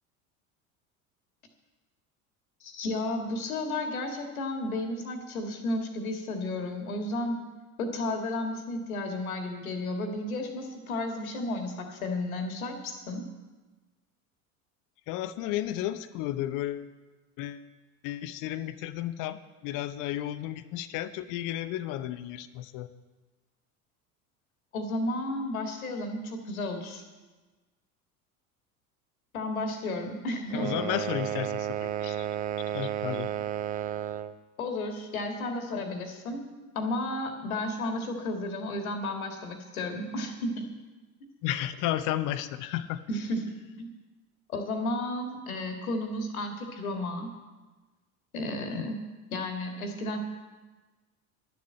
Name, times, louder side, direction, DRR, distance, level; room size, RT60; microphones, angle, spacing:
voice 1, 2.6-7.5 7.8-13.2 24.7-27.0 29.3-30.7 34.6-36.5 36.8-40.7 43.1-43.4 43.7-43.9 44.5-47.3 48.3-49.0 49.3-50.2, left 2 dB, 70° left, 5 dB, 1.8 m, -33 dB
voice 2, 15.1-16.9 17.4-17.6 18.0-19.4 19.6-22.9 30.5-32.3 32.7-33.3 41.4-43.0 48.7-48.9, left 13 dB, 45° left, 13 dB, 0.9 m, -33 dB
sound 1, 30.5-34.4, right 10 dB, 20° right, 0.4 m, -32 dB
11.0 x 7.5 x 8.6 m, 1.2 s
figure-of-eight pair, 70°, 43 cm